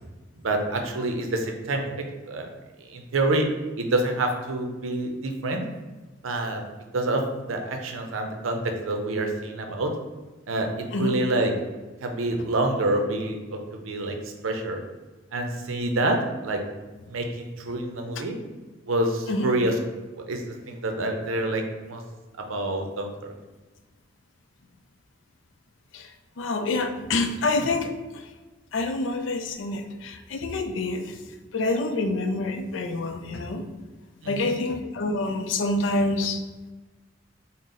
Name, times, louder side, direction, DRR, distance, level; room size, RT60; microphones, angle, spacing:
voice 1, 0.4-2.5 2.9-3.5 3.8-5.6 6.2-6.6 6.9-9.9 10.5-14.1 14.4-14.8 15.3-16.6 17.1-18.3 18.9-19.8 20.2-22.0 22.4-23.3 34.2-34.6, right 2 dB, 90° right, 4 dB, 0.5 m, -27 dB
voice 2, 26.4-27.9 28.7-31.2 31.5-33.6 34.3-36.4, left 2 dB, 65° left, 6 dB, 0.4 m, -27 dB
3.9 x 2.1 x 3.7 m, 1.2 s
head